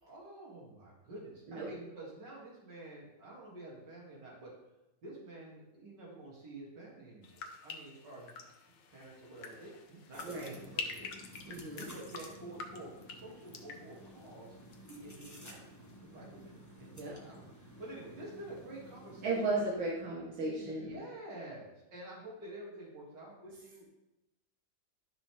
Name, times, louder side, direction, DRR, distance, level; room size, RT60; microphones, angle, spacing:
voice 1, 0.0-4.5 5.0-8.3 8.9-11.1 11.8-14.6 14.9-15.7 16.1-16.5 16.8-19.9 20.6-23.8, right 1 dB, 65° right, -4 dB, 3.1 m, -49 dB
sound 1, 7.2-15.2 15.4-16.0, left 5 dB, 75° left, 1.6 m, -47 dB
sound 2, 10.1-19.5, equal, 15° left, 0.8 m, -53 dB
voice 2, 10.2-10.6 11.5-11.9 17.0-17.2 19.2-20.9, right 2 dB, 85° right, -6 dB, 2.3 m, -35 dB
12.0 x 5.9 x 3.5 m, 0.95 s
omnidirectional pair, 2.1 m